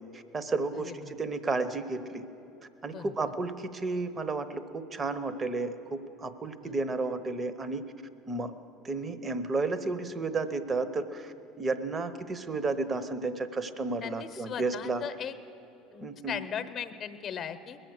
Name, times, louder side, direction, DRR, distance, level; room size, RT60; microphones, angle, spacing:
voice 1, 0.0-2.2 2.8-7.8 8.3-8.5 8.8-15.0 16.0-16.4, right 3 dB, 30° right, 11 dB, 0.9 m, -32 dB
voice 2, 14.0-15.3 15.9-17.8, left 8 dB, 40° left, 10 dB, 0.9 m, -38 dB
21.0 x 7.8 x 6.6 m, 2.9 s
hypercardioid pair, 75°, 0 cm